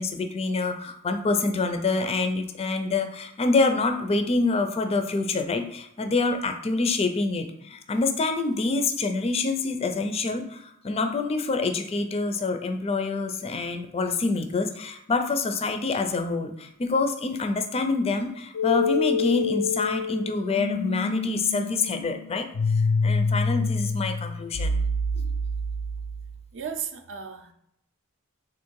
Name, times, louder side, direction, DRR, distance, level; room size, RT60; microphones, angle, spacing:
voice 1, 0.0-22.5 23.0-24.8 25.1-25.3, left 3 dB, 30° left, 0.4 m, -26 dB
sound 1, 18.5-26.4, left 3 dB, 75° left, 0.6 m, -27 dB
voice 2, 26.5-27.5, right 7 dB, 60° right, 0.5 m, -34 dB
3.6 x 2.5 x 4.6 m
head